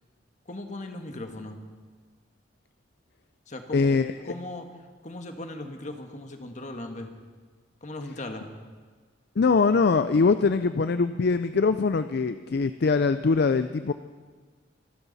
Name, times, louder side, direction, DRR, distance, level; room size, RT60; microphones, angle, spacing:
voice 1, 0.5-1.6 3.5-4.6 5.0-7.1 7.8-8.5, left 2 dB, 40° left, 5 dB, 1.5 m, -38 dB
voice 2, 3.7-4.3 9.4-13.9, left 4 dB, 55° left, 11 dB, 0.4 m, -23 dB
26.0 x 13.0 x 4.1 m, 1.4 s
head